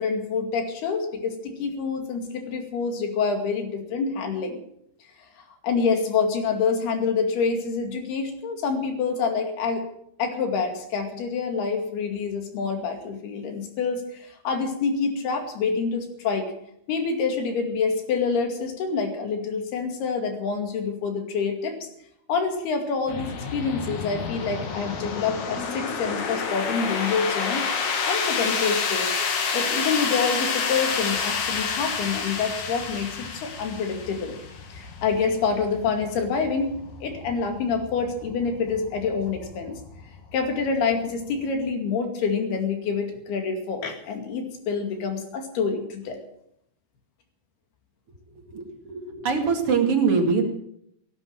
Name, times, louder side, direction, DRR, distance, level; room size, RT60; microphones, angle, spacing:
voice 1, 0.0-4.6 5.4-9.9 10.2-16.5 16.9-21.9 22.3-27.7 28.1-29.1 29.5-34.4 34.7-36.7 37.0-39.8 40.3-46.2, left 5 dB, 80° left, 4 dB, 4.3 m, -27 dB
sound 1, 23.1-41.7, left 5 dB, 55° left, 2.9 m, -30 dB
voice 2, 48.5-50.4, right 5 dB, 40° right, 2 dB, 2.7 m, -23 dB
18.0 x 9.8 x 7.6 m, 0.73 s
omnidirectional pair, 4.5 m